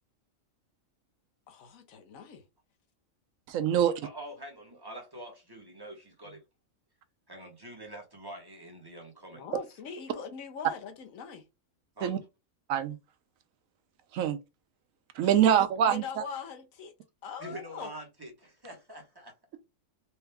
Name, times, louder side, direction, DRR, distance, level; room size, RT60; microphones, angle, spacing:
voice 1, 1.5-2.4 9.3-11.4 15.2-15.5 15.8-16.9 17.2-17.9, left 6 dB, 80° left, 1.2 m, -42 dB
voice 2, 3.5-3.9 12.0-12.2 12.7-13.0 14.1-14.4 15.2-16.2, right 9 dB, 80° right, 1.0 m, -24 dB
voice 3, 4.0-6.4 7.3-9.5 12.0-12.2 17.4-19.6, right 1 dB, 20° right, 1.0 m, -45 dB
4.4 x 2.3 x 3.4 m
omnidirectional pair, 1.4 m